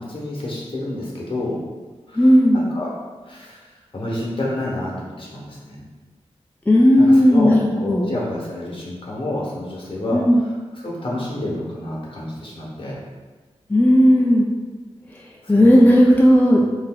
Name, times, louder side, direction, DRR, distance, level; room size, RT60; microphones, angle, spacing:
voice 1, 0.0-1.6 2.1-2.9 3.2-3.6 3.9-5.8 7.0-13.0 15.4-15.9 16.5-16.6, left 1 dB, 50° left, -4 dB, 0.9 m, -29 dB
voice 2, 2.2-2.6 6.7-8.1 10.1-10.4 13.7-14.5 15.5-16.6, equal, 15° left, -2 dB, 0.3 m, -14 dB
4.0 x 2.5 x 2.2 m, 1.4 s
wide cardioid pair, 70°, 11 cm